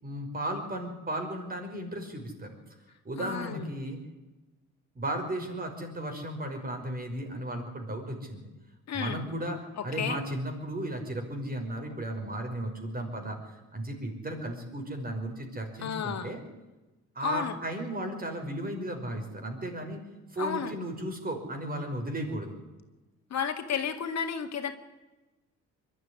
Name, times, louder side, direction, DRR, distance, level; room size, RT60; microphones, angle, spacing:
voice 1, 0.0-2.6 3.0-4.0 5.0-8.5 8.9-9.6 9.8-16.4 17.2-20.0 20.3-22.6, right 1 dB, 30° right, 4 dB, 5.7 m, -35 dB
voice 2, 3.2-3.8 8.9-9.2 9.8-10.2 15.8-16.3 17.2-17.5 20.4-20.7 23.3-24.7, left 7 dB, 60° left, 6 dB, 2.1 m, -32 dB
22.5 x 12.5 x 9.8 m, 1.1 s
cardioid pair, 90°, 30 cm